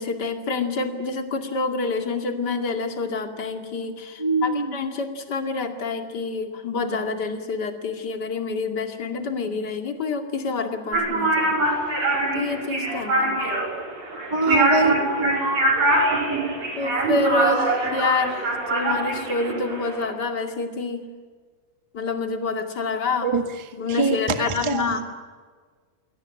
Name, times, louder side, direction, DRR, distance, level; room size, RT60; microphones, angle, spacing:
voice 1, 0.0-11.6 12.3-13.6 16.8-21.0 21.9-23.3 23.7-25.0, left 3 dB, 35° left, 5 dB, 2.5 m, -27 dB
voice 2, 4.2-4.7 14.3-15.3 23.2-23.4 23.9-25.0, right 3 dB, 35° right, 7 dB, 0.5 m, -23 dB
sound 1, 10.9-20.1, right 2 dB, 50° right, 6.0 m, -23 dB
22.5 x 18.0 x 10.0 m, 1.5 s
omnidirectional pair, 3.8 m